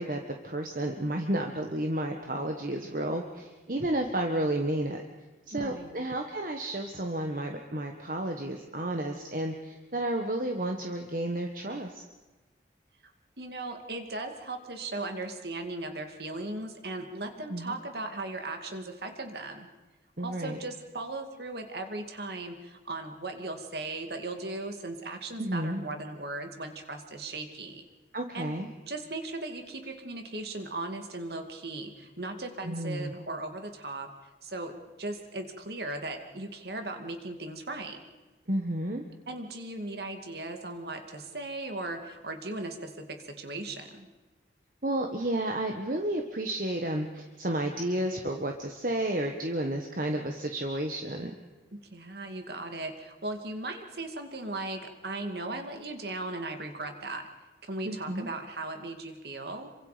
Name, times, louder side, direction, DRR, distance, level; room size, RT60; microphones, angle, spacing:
voice 1, 0.0-5.0 5.5-12.0 17.5-17.8 20.2-20.6 25.4-25.8 28.1-28.7 32.6-33.1 38.5-39.0 44.8-51.3 57.9-58.3, right 1 dB, 50° right, 3 dB, 1.4 m, -31 dB
voice 2, 5.5-6.0 13.0-13.1 13.4-19.7 20.2-27.8 28.3-28.6 28.9-34.1 34.4-38.0 39.3-44.1 51.7-57.3 57.6-59.7, right 2 dB, 65° right, 5 dB, 2.4 m, -37 dB
27.0 x 24.5 x 5.1 m, 1.2 s
head